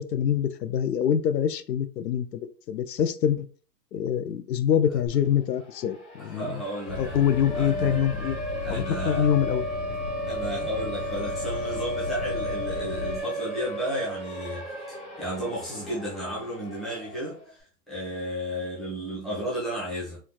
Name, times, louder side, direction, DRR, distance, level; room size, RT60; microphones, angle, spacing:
voice 1, 0.0-3.5 3.9-6.6 7.0-8.4 8.7-9.7, left 9 dB, 85° left, 0.6 m, -25 dB
Siren, 5.1-5.2 5.5-17.5, equal, 35° left, 1.2 m, -34 dB
voice 2, 6.2-7.2 7.5-7.9 8.6-9.3 10.3-20.2, equal, ahead, 0.4 m, -33 dB
sound 1, 6.9-13.2, left 2 dB, 70° left, 1.3 m, -36 dB
4.4 x 2.3 x 2.3 m
hypercardioid pair, 180°, 49 cm